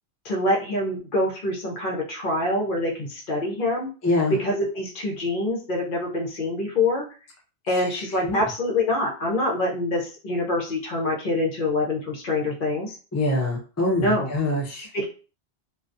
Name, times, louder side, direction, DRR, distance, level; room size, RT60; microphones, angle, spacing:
voice 1, 0.2-3.9 4.3-7.0 7.7-12.9 14.0-14.3 14.9-15.0, left 1 dB, 55° left, -1 dB, 0.8 m, -25 dB
voice 2, 4.0-4.4 7.7-7.9 8.2-8.4 13.1-14.9, left 2 dB, 25° left, -2 dB, 0.3 m, -24 dB
2.2 x 2.2 x 2.5 m, 0.36 s
omnidirectional pair, 1.2 m